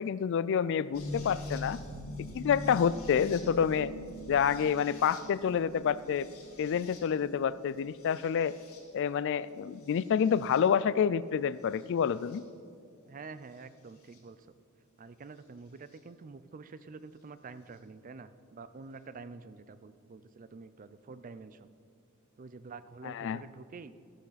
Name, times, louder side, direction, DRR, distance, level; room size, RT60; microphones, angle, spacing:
voice 1, 0.0-1.8 2.3-3.9 4.3-6.3 6.6-8.5 8.9-12.4 23.0-23.4, left 7 dB, 60° left, 18 dB, 0.3 m, -28 dB
sound 1, 0.9-9.1 9.8-10.6 11.7-12.4 14.1-14.2 15.9-16.0, left 1 dB, 80° left, 2.2 m, -44 dB
voice 2, 13.1-14.4 15.0-21.7 22.4-24.0, right 4 dB, 40° right, 13 dB, 0.4 m, -47 dB
13.0 x 12.0 x 4.1 m, 2.3 s
head